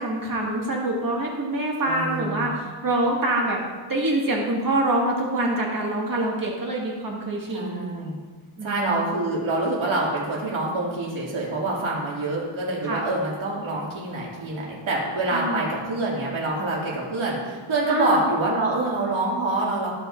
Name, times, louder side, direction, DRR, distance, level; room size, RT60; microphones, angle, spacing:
voice 1, 0.0-3.6 3.9-7.9 8.6-9.1 12.8-13.0 15.3-15.7 17.9-18.2, right 1 dB, 45° right, -3 dB, 1.9 m, -25 dB
voice 2, 1.8-2.5 7.5-8.2 8.6-19.9, right 2 dB, 90° right, -4 dB, 2.4 m, -26 dB
15.0 x 5.8 x 2.5 m, 1.4 s
wide cardioid pair, 135°, 46 cm